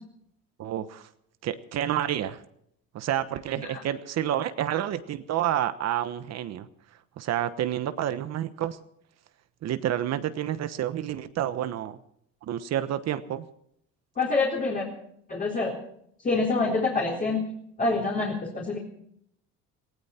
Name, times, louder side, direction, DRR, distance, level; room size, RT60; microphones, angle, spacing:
voice 1, 0.6-1.1 1.4-2.4 2.9-6.7 7.2-8.8 9.6-12.0 12.4-13.5, right 11 dB, 55° right, 12 dB, 1.2 m, -29 dB
voice 2, 14.2-14.9 15.3-15.8 16.2-17.5 17.8-18.8, left 3 dB, 25° left, -3 dB, 3.9 m, -26 dB
18.5 x 17.0 x 4.4 m, 0.72 s
cardioid pair, 115°, 32 cm